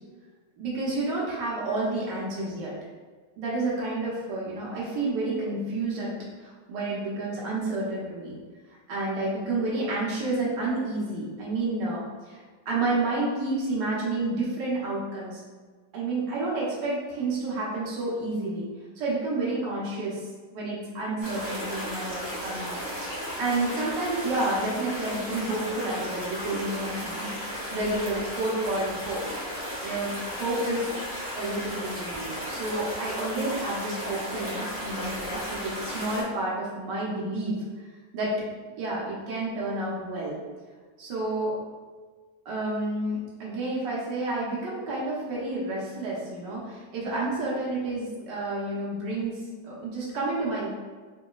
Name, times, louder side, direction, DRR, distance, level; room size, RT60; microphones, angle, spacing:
voice 1, 0.6-2.7 3.4-6.1 6.4-8.3 8.9-15.4 15.9-18.7 19.0-20.2 20.5-29.2 29.8-31.0 31.4-37.6 38.1-38.4 38.8-40.4 41.0-41.5 42.4-50.7, right 2 dB, 70° right, -6 dB, 1.4 m, -30 dB
sound 1, 21.2-36.2, equal, 35° right, 0.9 m, -35 dB
3.8 x 2.7 x 2.3 m, 1.4 s
omnidirectional pair, 2.0 m